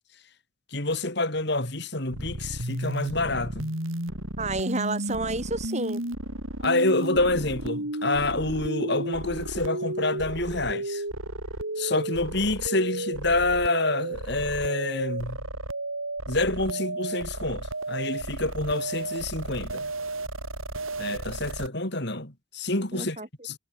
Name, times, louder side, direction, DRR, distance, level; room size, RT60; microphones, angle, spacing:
voice 1, 0.7-3.7 6.6-11.0 11.8-15.4 16.3-19.9 21.0-23.2 23.4-23.6, left 2 dB, 55° left, 3.9 m, -27 dB
sound 1, 2.1-21.7, right 1 dB, 80° right, 7.1 m, -33 dB
voice 2, 4.4-6.0 22.9-23.3, right 2 dB, 35° right, 3.5 m, -30 dB
head